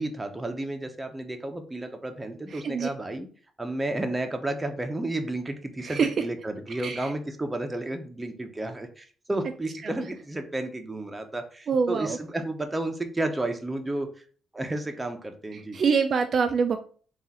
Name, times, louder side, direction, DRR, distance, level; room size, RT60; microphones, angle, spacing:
voice 1, 0.0-3.3 3.6-14.1 14.5-15.8, right 2 dB, 15° right, 6 dB, 0.7 m, -32 dB
voice 2, 2.5-2.9 5.8-6.1 6.8-7.1 9.8-9.9 11.7-12.2 15.7-16.8, right 5 dB, 50° right, 7 dB, 0.3 m, -25 dB
3.6 x 2.4 x 4.1 m, 0.42 s
cardioid pair, 90°, 0 cm